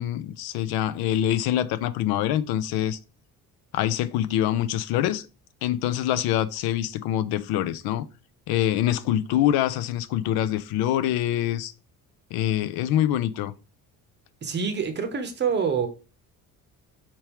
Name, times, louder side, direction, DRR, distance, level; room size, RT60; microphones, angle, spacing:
voice 1, 0.0-3.0 3.7-5.3 5.6-8.1 8.5-11.7 12.3-13.5, left 12 dB, 85° left, 0.5 m, -25 dB
voice 2, 14.4-15.9, right 6 dB, 30° right, 0.7 m, -26 dB
4.4 x 3.5 x 2.9 m
cardioid pair, 155°, 36 cm